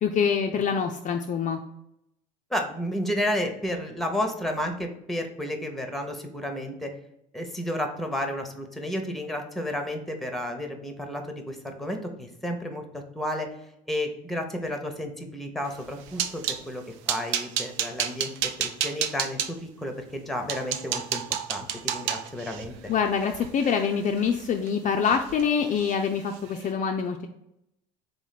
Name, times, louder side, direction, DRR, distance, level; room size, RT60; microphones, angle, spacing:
voice 1, 0.0-1.6 22.9-27.3, left 6 dB, 40° left, 4 dB, 0.4 m, -25 dB
voice 2, 2.5-6.9 7.3-13.5 13.9-18.3 18.6-21.2 21.5-22.9, left 1 dB, ahead, 5 dB, 0.8 m, -32 dB
sound 1, 15.7-16.6 17.1-19.5 20.1-20.2 20.5-24.7 25.0-25.5 25.7-25.9 26.3-26.5, right 9 dB, 65° right, 0.4 m, -31 dB
3.7 x 3.0 x 4.0 m, 0.82 s
hypercardioid pair, 70°, 21 cm